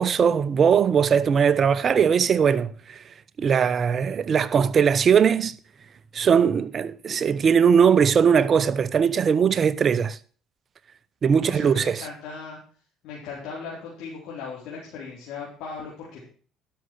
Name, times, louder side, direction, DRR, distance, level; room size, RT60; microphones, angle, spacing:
voice 1, 0.0-3.0 3.4-5.5 6.1-10.2 11.2-12.0, right 7 dB, 45° right, 0.8 m, -20 dB
voice 2, 11.4-12.6 13.0-16.3, left 5 dB, 75° left, 4.1 m, -38 dB
12.0 x 6.4 x 6.5 m
supercardioid pair, 75°, 0 cm